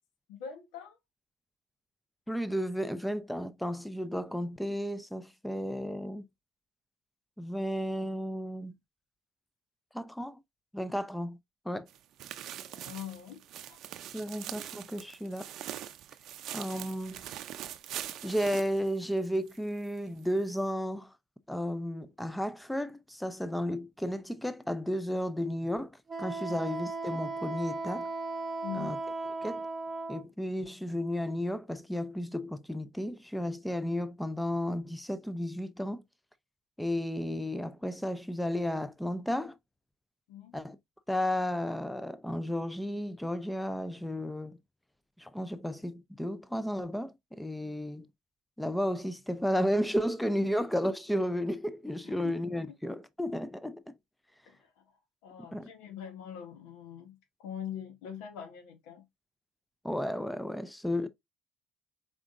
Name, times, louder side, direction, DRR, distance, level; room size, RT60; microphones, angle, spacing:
voice 1, 0.3-1.0 12.5-13.8 28.6-29.0 40.3-40.6 50.4-50.5 52.0-52.4 54.5-59.1, left 9 dB, 80° left, 1.0 m, -44 dB
voice 2, 2.3-6.2 7.4-8.7 9.9-10.4 10.7-11.4 11.7-11.9 14.1-15.5 16.5-17.3 18.2-21.1 21.5-25.9 26.2-28.1 28.7-29.0 29.4-29.7 30.1-36.0 36.8-39.6 40.5-40.8 41.1-44.6 45.2-48.1 48.6-53.9 55.4-55.7 59.8-61.1, equal, 5° left, 0.5 m, -33 dB
sound 1, 11.9-19.6 19.9-20.0 20.5-20.6, right 11 dB, 65° right, 0.5 m, -43 dB
Wind instrument woodwind instrument, 26.1-30.2, right 3 dB, 25° right, 0.8 m, -36 dB
4.8 x 3.6 x 2.5 m
supercardioid pair, 80°, 0 cm